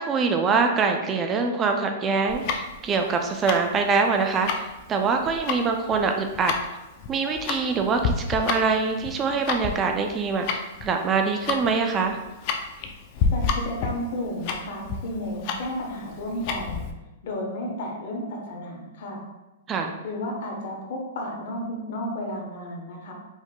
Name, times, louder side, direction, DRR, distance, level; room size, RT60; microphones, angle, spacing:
voice 1, 0.0-6.5 7.1-12.2 19.7-19.9, right 4 dB, 25° right, 4 dB, 0.4 m, -24 dB
Tick-tock, 2.3-16.9, left 5 dB, 45° left, 0.4 m, -30 dB
voice 2, 13.3-16.8 17.2-19.2 20.0-23.1, left 1 dB, 65° left, 0 dB, 1.0 m, -32 dB
4.7 x 2.7 x 2.2 m, 1.0 s
hypercardioid pair, 130°, 0 cm